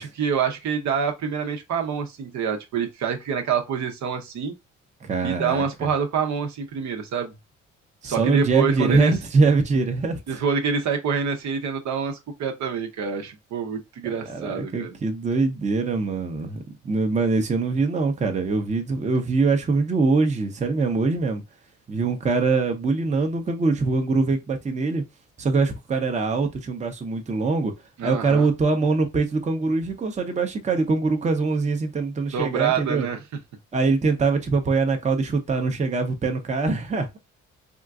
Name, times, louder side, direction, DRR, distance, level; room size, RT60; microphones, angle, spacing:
voice 1, 0.0-4.5 5.2-7.3 8.0-9.1 10.3-15.0 28.0-28.5 32.3-33.2, right 6 dB, 70° right, 0.8 m, -26 dB
voice 2, 5.0-5.6 8.0-10.4 14.3-21.4 21.9-25.0 25.4-27.7 28.0-33.1 33.7-37.2, right 4 dB, 25° right, 0.6 m, -23 dB
3.7 x 2.4 x 2.3 m
cardioid pair, 90°, 30 cm